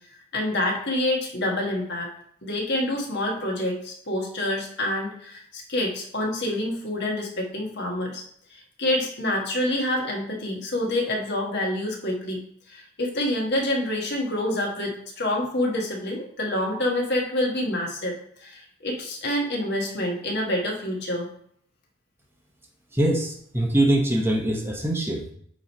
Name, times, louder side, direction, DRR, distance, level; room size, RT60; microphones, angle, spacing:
voice 1, 0.3-2.1 2.4-8.2 8.5-12.4 12.7-21.3, left 1 dB, 50° left, 0 dB, 1.5 m, -27 dB
voice 2, 22.9-25.3, right 1 dB, 10° right, 1 dB, 0.9 m, -23 dB
8.8 x 3.2 x 4.2 m, 0.64 s
head